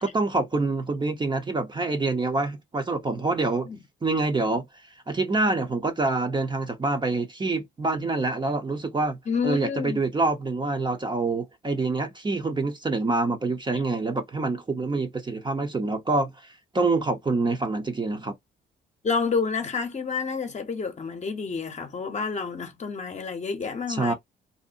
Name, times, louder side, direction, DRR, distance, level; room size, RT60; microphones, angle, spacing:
voice 1, 0.0-3.7 4.0-4.7 5.1-9.2 9.4-18.4 23.9-24.1, right 3 dB, 25° right, 0.6 m, -26 dB
voice 2, 9.3-10.0 13.7-13.8 19.0-24.1, left 5 dB, 35° left, 0.8 m, -29 dB
2.7 x 2.0 x 2.5 m
cardioid pair, 90°, 20 cm